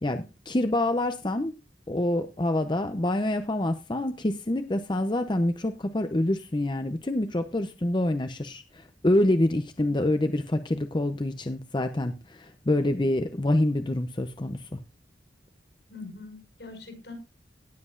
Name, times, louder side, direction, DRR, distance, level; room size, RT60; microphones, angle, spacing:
voice 1, 0.0-1.5 1.9-14.8, left 1 dB, 25° left, 0.6 m, -26 dB
voice 2, 15.9-17.1, left 3 dB, 80° left, 6.1 m, -43 dB
18.0 x 7.6 x 2.5 m
head